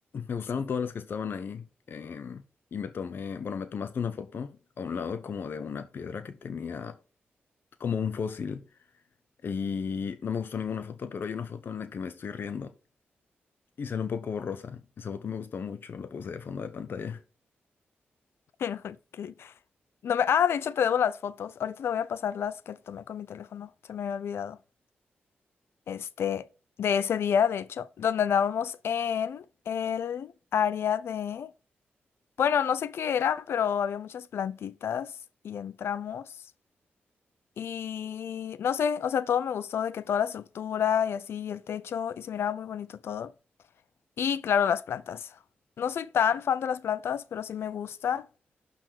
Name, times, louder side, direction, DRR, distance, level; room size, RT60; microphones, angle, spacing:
voice 1, 0.1-2.4 2.7-7.0 7.8-8.6 9.4-12.7 13.8-17.2, left 6 dB, 60° left, 0.9 m, -34 dB
voice 2, 18.6-19.5 20.0-24.6 25.9-26.4 26.8-31.5 32.4-35.1 35.4-36.3 37.6-43.3 44.2-45.3 45.8-48.3, left 8 dB, 85° left, 0.6 m, -29 dB
12.0 x 4.3 x 4.6 m
wide cardioid pair, 135°, 4 cm